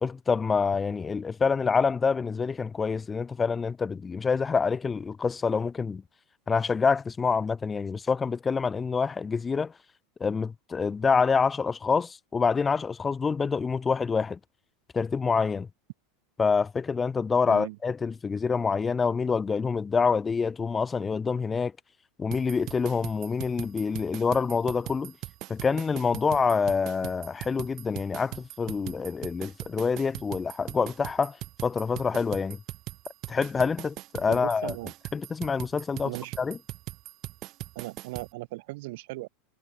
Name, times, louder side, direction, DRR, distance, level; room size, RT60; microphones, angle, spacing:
voice 1, 0.0-6.0 6.5-9.7 10.2-14.4 14.9-15.7 16.4-21.7 22.2-25.1 25.5-31.4 31.6-32.6 33.3-34.7 35.1-36.1 36.4-36.6, left 5 dB, 20° left, 0.4 m, -26 dB
sound 1, 22.3-38.3, right 17 dB, 45° right, 0.4 m, -40 dB
voice 2, 34.3-34.9 36.0-36.4 37.8-39.3, right 21 dB, 70° right, 1.7 m, -38 dB
supercardioid pair, 125°, 0 cm